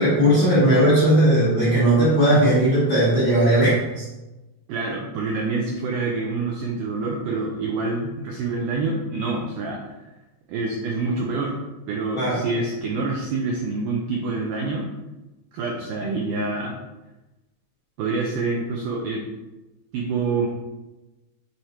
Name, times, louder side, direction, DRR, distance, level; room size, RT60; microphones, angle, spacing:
voice 1, 0.0-4.0 12.1-12.4, right 1 dB, 50° left, -8 dB, 1.2 m, -18 dB
voice 2, 4.7-10.0 10.5-11.6 11.9-14.9 15.5-16.8 18.0-19.2 19.9-20.5, right 3 dB, 80° right, -1 dB, 1.9 m, -26 dB
7.5 x 3.3 x 4.3 m, 1.1 s
omnidirectional pair, 4.5 m